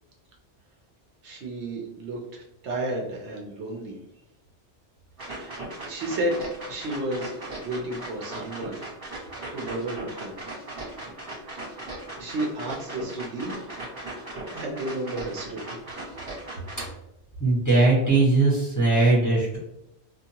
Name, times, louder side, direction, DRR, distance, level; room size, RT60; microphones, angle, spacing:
voice 1, 1.2-4.0 5.3-8.8 9.5-10.4 11.3-11.8 12.2-13.7 14.5-15.8, right 1 dB, 75° right, 0 dB, 0.9 m, -32 dB
sound 1, 5.2-16.9, right 2 dB, 50° right, 1.5 m, -38 dB
voice 2, 17.4-19.6, right 2 dB, 15° left, -7 dB, 1.3 m, -20 dB
2.7 x 2.4 x 2.8 m, 0.84 s
omnidirectional pair, 1.2 m